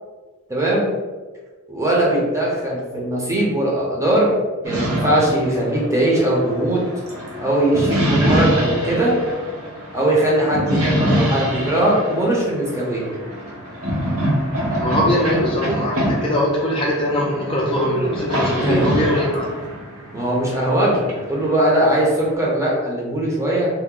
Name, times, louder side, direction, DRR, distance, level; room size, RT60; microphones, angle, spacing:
voice 1, 0.5-0.9 1.7-4.3 4.6-6.8 7.4-9.2 9.9-13.0 18.6-18.9 20.1-23.7, right 1 dB, 15° right, -4 dB, 0.6 m, -20 dB
sound 1, 4.6-22.3, equal, 80° right, 0.8 m, -25 dB
voice 2, 14.8-19.5, equal, 25° left, -4 dB, 0.4 m, -21 dB
2.8 x 2.1 x 3.7 m, 1.3 s
head